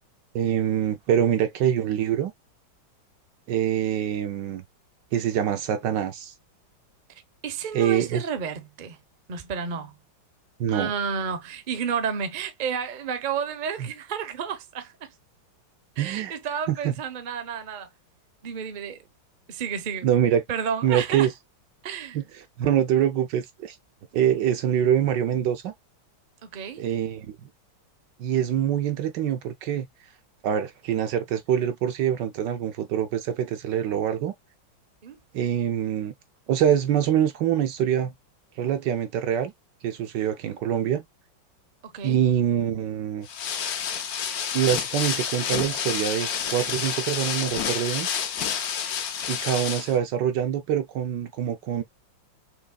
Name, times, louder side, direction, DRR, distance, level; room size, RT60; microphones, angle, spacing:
voice 1, 0.3-2.3 3.5-4.6 5.1-6.3 7.7-8.3 10.6-10.9 13.8-13.9 16.0-16.3 16.7-16.9 20.0-20.4 20.8-21.3 22.1-22.2 22.6-23.8 24.1-25.7 26.8-27.5 28.2-29.9 30.4-34.3 35.3-36.1 36.5-38.1 38.6-39.5 39.8-41.0 42.0-43.3 44.5-48.1 49.3-51.8, right 10 dB, 70° right, 1.2 m, -25 dB
voice 2, 7.4-9.0 9.3-9.9 10.7-15.1 16.0-17.9 18.4-19.0 19.5-20.1 20.5-21.3 21.8-22.2 26.4-26.8 35.0-35.2 41.8-42.2, right 7 dB, 40° right, 0.7 m, -31 dB
sound 1, 43.3-50.0, left 8 dB, 55° left, 1.2 m, -29 dB
6.3 x 3.1 x 2.2 m
omnidirectional pair, 2.1 m